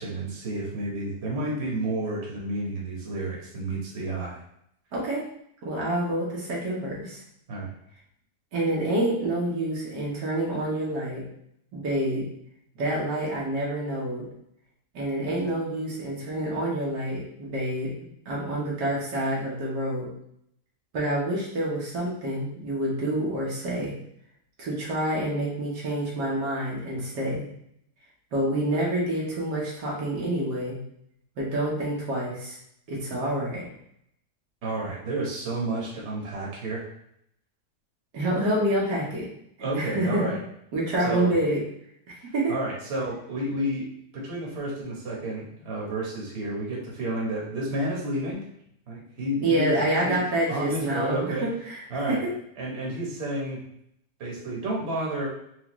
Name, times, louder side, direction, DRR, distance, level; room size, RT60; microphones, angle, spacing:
voice 1, 0.0-4.4 7.5-7.7 34.6-36.9 39.6-40.4 41.0-41.3 42.5-43.9 44.1-48.4 48.9-50.2 50.5-51.5 51.9-52.2 52.6-53.6 54.2-55.3, right 1 dB, 45° right, -4 dB, 1.3 m, -30 dB
voice 2, 4.9-5.3 5.6-7.2 8.5-11.2 11.7-12.3 12.8-14.3 14.9-17.9 18.3-20.1 20.9-23.9 24.6-27.5 28.3-30.8 31.4-32.6 32.9-33.6 38.1-39.3 39.7-40.2 40.7-41.6 42.3-42.5 49.4-52.2, right 1 dB, 80° right, -4 dB, 1.7 m, -27 dB
4.8 x 2.5 x 3.0 m, 0.71 s
omnidirectional pair, 1.8 m